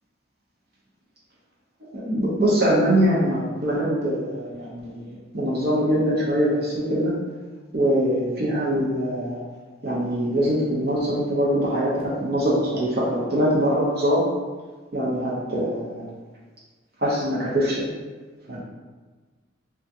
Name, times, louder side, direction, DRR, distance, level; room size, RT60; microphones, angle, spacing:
voice 1, 2.0-7.1 7.7-9.4 9.8-14.3 14.9-16.1 17.0-17.9 18.5-18.6, equal, 50° right, -7 dB, 0.7 m, -23 dB
3.5 x 2.3 x 2.8 m, 1.4 s
head